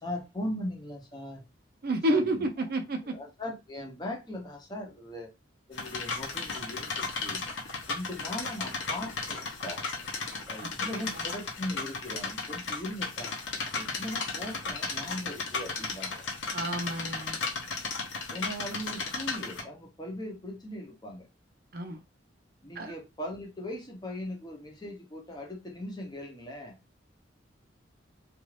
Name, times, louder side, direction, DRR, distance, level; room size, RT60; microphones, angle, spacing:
voice 1, 0.0-1.4 2.1-2.5 3.1-5.3 5.7-7.4 7.9-9.8 10.5-13.3 13.7-16.2 18.3-21.3 22.6-26.8, left 1 dB, 20° left, 1 dB, 0.8 m, -39 dB
voice 2, 1.8-3.1 16.5-17.4 21.7-22.0 22.8-22.9, right 1 dB, 50° right, 6 dB, 0.5 m, -29 dB
sound 1, 5.7-19.6, left 4 dB, 75° left, 0.9 m, -35 dB
2.6 x 2.4 x 3.2 m, 0.25 s
head